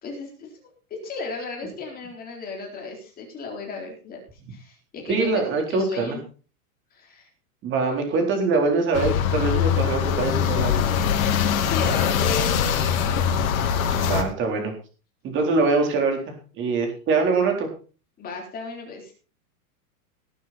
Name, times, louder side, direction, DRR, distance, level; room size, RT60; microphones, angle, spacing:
voice 1, 0.0-4.2 4.5-5.4 5.7-6.2 6.9-7.3 11.7-13.3 18.2-19.1, left 3 dB, 20° left, 0 dB, 4.0 m, -35 dB
voice 2, 5.1-6.2 7.6-10.8 13.9-14.7 15.2-16.2 16.6-17.7, right 4 dB, 25° right, 3 dB, 4.0 m, -23 dB
sound 1, 8.9-14.2, left 8 dB, 65° left, 3.0 m, -22 dB
18.5 x 9.2 x 4.3 m, 0.37 s
supercardioid pair, 160°, 44 cm